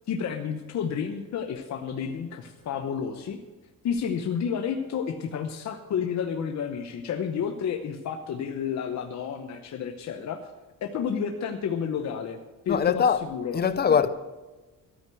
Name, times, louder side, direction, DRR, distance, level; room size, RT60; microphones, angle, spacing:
voice 1, 0.1-3.4 3.8-10.5 10.8-12.4 12.7-13.6 13.9-14.0, left 7 dB, 55° left, 0.9 m, -31 dB
voice 2, 12.7-13.2 13.5-14.1, left 7 dB, 30° left, 0.6 m, -22 dB
13.0 x 9.2 x 6.3 m
cardioid pair, 160°, 33 cm